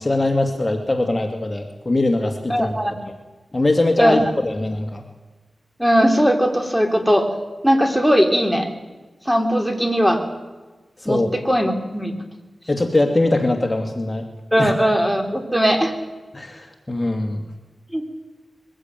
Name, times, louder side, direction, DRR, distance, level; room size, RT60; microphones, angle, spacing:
voice 1, 0.0-2.7 3.1-3.2 3.5-5.0 11.0-11.3 12.7-14.3 14.6-14.7 16.3-17.4, left 2 dB, 25° left, 4 dB, 2.4 m, -21 dB
voice 2, 2.5-3.0 4.0-4.2 5.8-7.3 7.6-8.7 9.3-10.2 11.1-12.1 14.5-15.9 17.9-18.0, equal, 5° right, 5 dB, 3.7 m, -18 dB
22.0 x 15.0 x 9.3 m, 1.2 s
cardioid pair, 55°, 0 cm